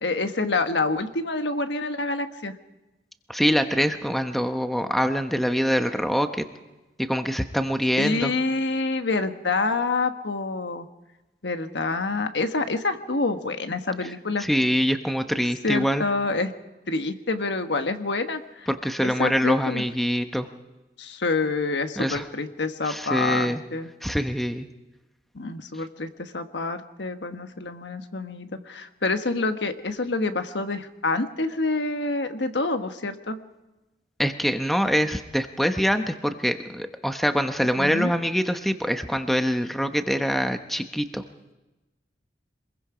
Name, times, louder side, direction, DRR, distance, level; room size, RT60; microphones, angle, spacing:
voice 1, 0.0-2.5 8.0-10.9 11.4-14.4 15.6-16.5 16.9-18.7 19.0-19.8 21.0-23.9 25.3-33.4 37.8-38.1, left 3 dB, 80° left, 8 dB, 1.3 m, -27 dB
voice 2, 3.3-6.5 7.0-8.3 14.4-16.0 18.7-20.5 22.0-22.3 22.8-23.6 24.0-24.7 34.2-41.2, equal, ahead, 7 dB, 0.9 m, -24 dB
26.0 x 21.5 x 5.0 m, 1.1 s
head